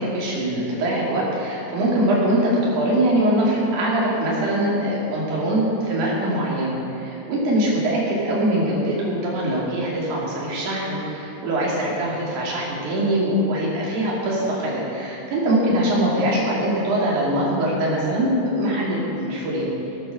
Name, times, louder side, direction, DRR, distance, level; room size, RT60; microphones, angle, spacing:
voice 1, 0.0-19.7, right 1 dB, 50° right, -5 dB, 3.9 m, -22 dB
19.0 x 7.8 x 6.4 m, 2.8 s
omnidirectional pair, 4.9 m